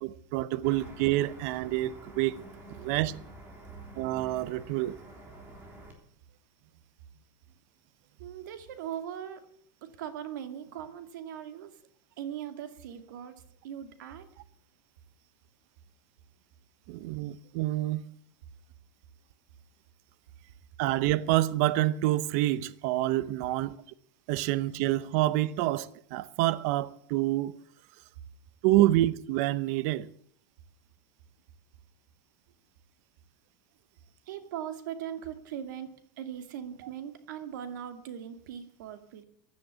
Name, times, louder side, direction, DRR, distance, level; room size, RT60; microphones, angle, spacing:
voice 1, 0.0-2.4 2.8-3.1 4.0-5.0 16.9-18.0 20.8-23.8 24.3-27.5 28.6-30.1, right 16 dB, 55° right, 0.7 m, -27 dB
sound 1, 0.6-5.9, right 1 dB, 20° right, 3.5 m, -49 dB
voice 2, 8.2-9.5 9.8-11.8 12.2-13.3 13.6-14.3 34.3-39.2, right 9 dB, 90° right, 2.3 m, -40 dB
15.0 x 11.0 x 8.4 m
supercardioid pair, 170°, 10 cm